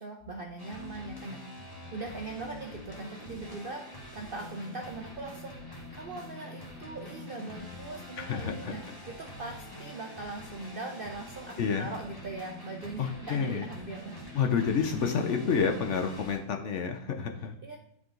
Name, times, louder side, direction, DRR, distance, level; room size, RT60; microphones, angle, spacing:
voice 1, 0.0-3.9 4.1-8.8 9.1-14.5 17.6-17.8, right 3 dB, 65° right, 2 dB, 0.5 m, -41 dB
sound 1, 0.6-16.4, left 1 dB, 15° left, 1.4 m, -45 dB
voice 2, 8.2-8.8 11.6-11.9 13.0-13.7 14.3-17.6, left 6 dB, 60° left, 4 dB, 0.8 m, -29 dB
10.0 x 3.7 x 3.8 m, 0.75 s
omnidirectional pair, 1.8 m